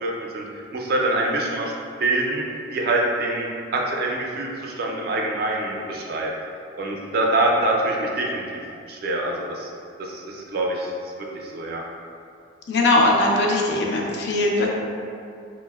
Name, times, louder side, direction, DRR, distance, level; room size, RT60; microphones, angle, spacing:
voice 1, 0.0-1.7 2.0-2.4 2.7-3.5 3.7-6.3 6.8-8.4 8.9-9.7 10.0-11.8, right 2 dB, 50° right, -1 dB, 0.4 m, -25 dB
voice 2, 12.7-14.7, left 2 dB, 55° left, -1 dB, 0.4 m, -20 dB
4.6 x 2.0 x 2.2 m, 2.4 s
head